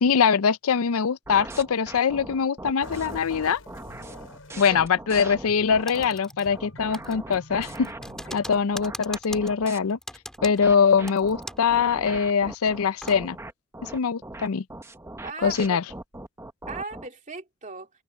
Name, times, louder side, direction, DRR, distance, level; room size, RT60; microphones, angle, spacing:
voice 1, 0.0-3.6 4.6-7.9 8.3-10.0 10.4-13.4 13.8-14.6 15.4-15.8, left 6 dB, 90° left, 0.5 m, -23 dB
sound 1, 1.3-6.1 6.5-9.8 10.4-17.1, right 1 dB, 15° right, 0.9 m, -40 dB
sound 2, 2.8-8.6, left 1 dB, 75° left, 6.8 m, -48 dB
voice 2, 4.5-4.8 8.3-8.5 15.2-15.8 16.7-17.9, right 3 dB, 35° right, 2.7 m, -38 dB
Typing, 5.9-6.7 6.9-11.8 12.0-12.1 12.6-13.2, left 1 dB, 5° left, 2.9 m, -41 dB
head